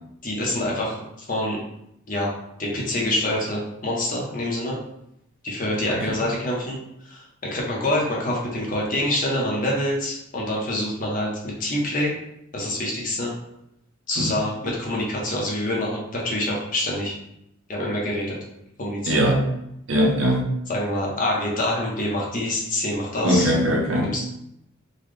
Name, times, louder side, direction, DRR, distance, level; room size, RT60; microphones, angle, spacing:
voice 1, 0.2-1.0 1.3-1.6 2.1-2.3 2.6-4.8 5.4-6.8 7.0-12.1 12.5-13.3 14.1-17.2 17.7-18.4 18.8-19.2 20.7-23.5 23.9-24.2, left 1 dB, 40° left, -2 dB, 0.8 m, -26 dB
voice 2, 19.1-19.4 19.9-20.5 23.2-24.1, equal, 65° right, 0 dB, 0.7 m, -20 dB
4.0 x 2.2 x 3.2 m, 0.80 s
head